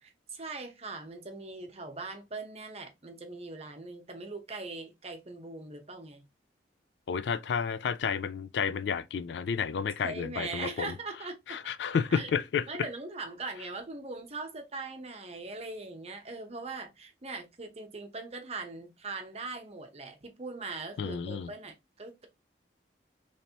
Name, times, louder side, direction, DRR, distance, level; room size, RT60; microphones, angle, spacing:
voice 1, 0.0-6.2 10.0-11.6 12.1-12.3 12.7-22.3, right 3 dB, 35° right, 0.8 m, -41 dB
voice 2, 7.1-10.9 11.5-12.9 21.0-21.5, left 6 dB, 70° left, 0.3 m, -31 dB
4.0 x 3.2 x 2.8 m
head